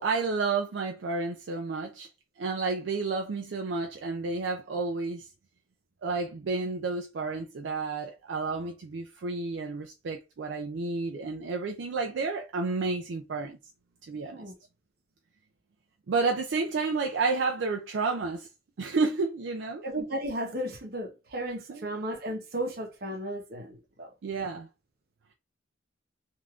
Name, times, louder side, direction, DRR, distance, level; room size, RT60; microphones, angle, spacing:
voice 1, 0.0-2.1 2.4-5.3 6.0-13.6 14.0-14.4 16.1-18.5 18.8-19.8 21.7-21.9 24.2-24.7, right 4 dB, 70° right, 0.4 m, -31 dB
voice 2, 19.8-24.1, right 1 dB, 55° right, 0.8 m, -34 dB
3.4 x 2.6 x 2.3 m
head